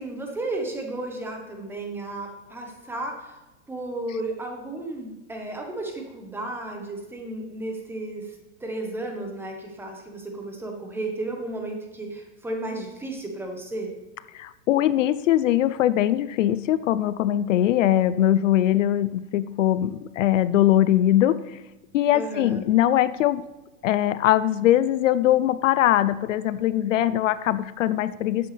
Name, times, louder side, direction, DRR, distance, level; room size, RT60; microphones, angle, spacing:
voice 1, 0.0-3.4 3.7-13.9 22.1-22.6, right 2 dB, 5° right, 2 dB, 1.1 m, -33 dB
voice 2, 14.3-21.6 21.9-23.4 23.8-28.5, left 12 dB, 70° left, 15 dB, 0.6 m, -21 dB
12.5 x 7.8 x 3.4 m, 1.0 s
supercardioid pair, 155°, 39 cm